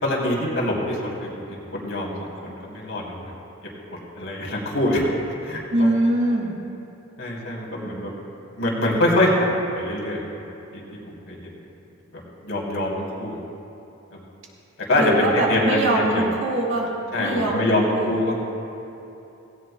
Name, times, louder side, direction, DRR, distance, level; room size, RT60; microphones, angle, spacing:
voice 1, 0.0-2.1 2.4-3.3 4.1-5.0 5.4-6.0 7.2-8.1 8.6-10.2 10.7-10.8 11.1-11.4 12.4-13.4 14.1-14.2 14.9-16.2 17.1-18.5, left 1 dB, 70° left, -3 dB, 3.0 m, -24 dB
voice 2, 5.7-6.6 15.0-18.1, right 1 dB, 60° right, -3 dB, 1.9 m, -23 dB
17.5 x 17.0 x 2.2 m, 2.9 s
head